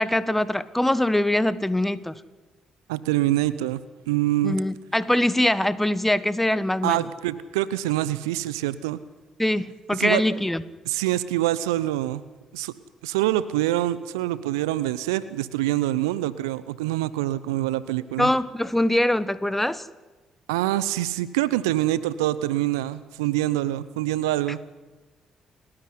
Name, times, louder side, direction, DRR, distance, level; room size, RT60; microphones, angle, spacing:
voice 1, 0.0-2.1 4.4-7.0 9.4-10.6 18.2-19.8, left 1 dB, 10° left, 16 dB, 1.4 m, -23 dB
voice 2, 2.9-3.8 4.1-4.6 6.8-9.0 10.0-10.2 10.9-12.2 12.5-12.7 13.0-18.3 20.5-24.6, right 15 dB, 80° right, 17 dB, 0.7 m, -25 dB
29.5 x 9.9 x 9.5 m, 1.2 s
figure-of-eight pair, 45°, 2 cm